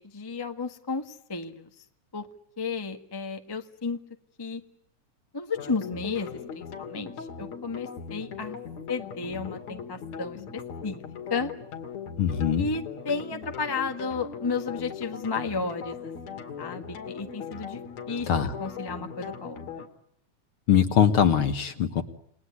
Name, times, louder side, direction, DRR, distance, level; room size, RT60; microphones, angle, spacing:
voice 1, 0.0-1.7 2.1-2.3 2.6-4.0 4.4-4.6 5.3-8.6 8.9-11.0 11.3-11.5 12.6-17.8 18.1-18.3 18.6-19.9, left 4 dB, 15° left, 5 dB, 0.7 m, -33 dB
sound 1, 5.5-19.9, left 6 dB, 70° left, 3.4 m, -39 dB
voice 2, 12.2-12.7 18.3-18.5 20.7-22.0, left 8 dB, 55° left, 9 dB, 1.9 m, -22 dB
29.5 x 19.0 x 9.8 m, 0.75 s
omnidirectional pair, 3.3 m